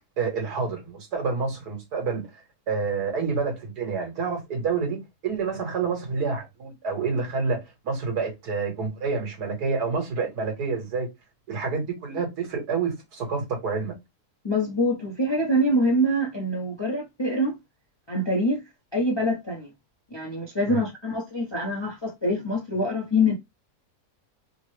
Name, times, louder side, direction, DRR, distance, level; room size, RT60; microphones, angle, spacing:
voice 1, 0.2-2.2 2.7-11.1 11.5-13.9 20.7-20.9, right 4 dB, 75° right, 1.9 m, -28 dB
voice 2, 14.4-17.6 18.1-18.6 18.9-19.7 20.1-23.3, equal, 30° left, 0.5 m, -25 dB
3.6 x 2.1 x 3.1 m
omnidirectional pair, 1.7 m